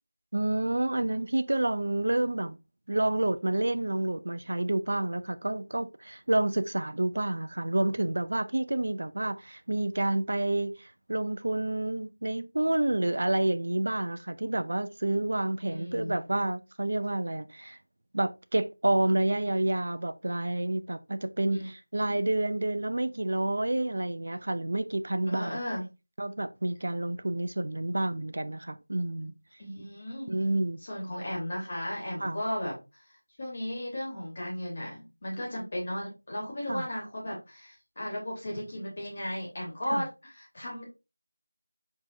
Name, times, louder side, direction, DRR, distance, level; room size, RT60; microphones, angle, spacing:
voice 1, 0.3-2.6 2.9-17.8 18.1-25.6 26.2-29.3 30.3-30.8 32.2-32.4 36.7-36.9 39.9-40.1, right 1 dB, 55° right, 0.4 m, -29 dB
voice 2, 15.7-16.2 21.5-21.7 22.0-22.1 25.3-25.8 29.6-30.3 30.8-33.0 33.4-40.9, left 1 dB, 35° left, 2.8 m, -35 dB
4.7 x 4.4 x 2.6 m
figure-of-eight pair, 175°, 0 cm